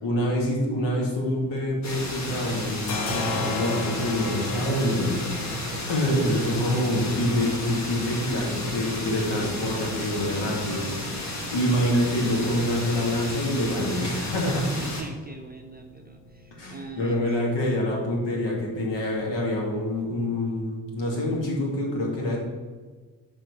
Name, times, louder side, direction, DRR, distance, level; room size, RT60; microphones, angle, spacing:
voice 1, 0.0-5.1 5.9-10.8 11.5-14.7 16.6-22.4, left 1 dB, 60° left, -2 dB, 2.2 m, -26 dB
sound 1, 1.3-2.2 2.5-20.0, left 2 dB, 90° left, 0.7 m, -39 dB
sound 2, 1.8-15.0, left 1 dB, 35° left, 1.7 m, -33 dB
voice 2, 14.7-17.2, right 2 dB, 20° right, 4 dB, 0.7 m, -40 dB
6.1 x 4.5 x 5.5 m, 1.4 s
figure-of-eight pair, 40°, 49 cm